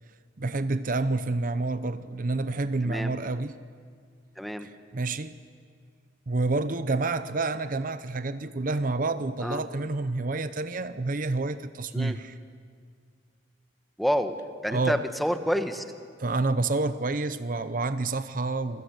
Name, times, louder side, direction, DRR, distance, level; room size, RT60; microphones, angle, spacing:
voice 1, 0.4-3.6 4.9-5.3 6.3-12.3 14.7-15.0 16.2-18.8, right 3 dB, 45° right, 0.7 m, -28 dB
voice 2, 2.8-3.2 4.4-4.7 9.4-9.6 11.9-12.2 14.0-14.4 14.6-15.8, equal, ahead, 1.2 m, -28 dB
27.5 x 22.0 x 8.2 m
head